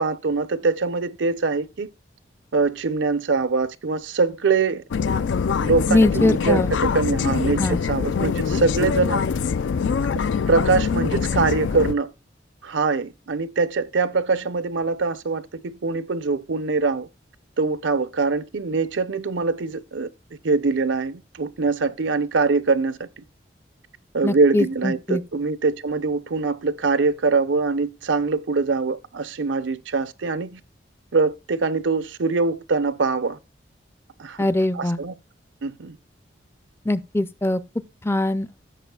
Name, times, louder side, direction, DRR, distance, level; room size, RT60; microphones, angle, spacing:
voice 1, 0.0-1.9 2.5-4.8 5.1-5.2 5.6-9.3 10.5-12.1 12.6-17.1 17.6-20.1 20.4-23.2 24.1-30.6 31.1-33.4 34.2-34.5 34.7-35.1 35.6-36.0, right 4 dB, 90° right, 0.7 m, -23 dB
sound 1, 4.9-11.9, left 5 dB, 85° left, 0.4 m, -23 dB
voice 2, 5.9-6.7 7.6-7.8 24.2-25.2 34.4-35.0 36.8-37.6 38.0-38.5, left 1 dB, 15° left, 0.4 m, -22 dB
16.0 x 6.7 x 2.3 m
head